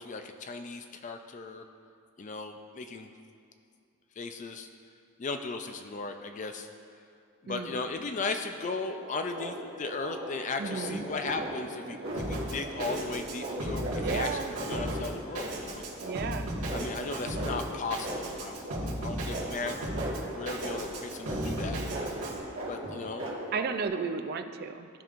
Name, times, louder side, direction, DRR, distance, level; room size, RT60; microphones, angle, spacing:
voice 1, 0.0-1.6 2.2-3.1 4.2-4.7 5.2-6.7 7.4-15.8 16.7-19.8 20.3-22.2 22.6-23.3, left 3 dB, 35° left, 6 dB, 0.4 m, -36 dB
voice 2, 7.4-7.8 10.6-11.1 14.0-14.5 16.0-16.5 23.5-24.9, right 5 dB, 45° right, 8 dB, 0.4 m, -33 dB
sound 1, 8.6-23.9, right 1 dB, 60° right, 1.6 m, -39 dB
Drum kit, 12.2-22.4, right 1 dB, 75° right, 1.7 m, -36 dB
15.5 x 5.3 x 2.5 m, 2.4 s
head